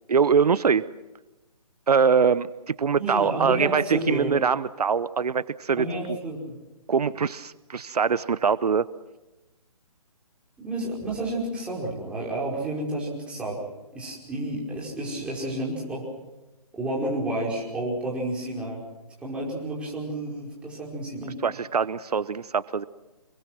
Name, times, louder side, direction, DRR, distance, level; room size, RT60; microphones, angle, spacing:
voice 1, 0.1-0.9 1.9-6.2 6.9-8.9 21.4-22.8, right 6 dB, 80° right, 17 dB, 0.8 m, -23 dB
voice 2, 3.0-4.3 5.8-6.6 10.6-13.6 13.9-16.0 16.8-18.8 19.2-21.4, right 1 dB, 5° right, -5 dB, 5.2 m, -30 dB
27.0 x 23.0 x 6.1 m, 1.0 s
hypercardioid pair, 160°, 20 cm